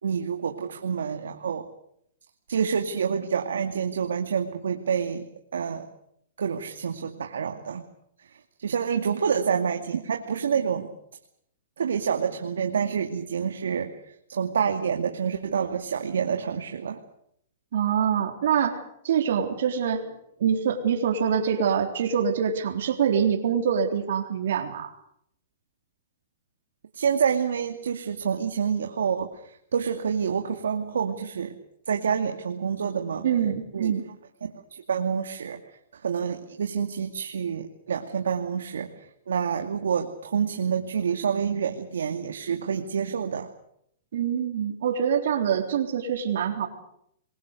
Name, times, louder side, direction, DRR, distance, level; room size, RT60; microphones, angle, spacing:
voice 1, 0.0-1.7 2.5-5.3 5.5-5.9 6.4-7.8 8.3-10.9 11.8-13.9 14.3-17.0 26.9-31.6 31.9-33.3 33.7-33.9 34.4-35.6 35.9-43.5, right 7 dB, 85° right, 4 dB, 2.4 m, -28 dB
voice 2, 17.7-20.1 20.4-24.9 33.2-34.0 44.1-46.7, right 7 dB, 70° right, 4 dB, 3.8 m, -25 dB
27.5 x 22.0 x 6.8 m, 0.72 s
hypercardioid pair, 135°, 0 cm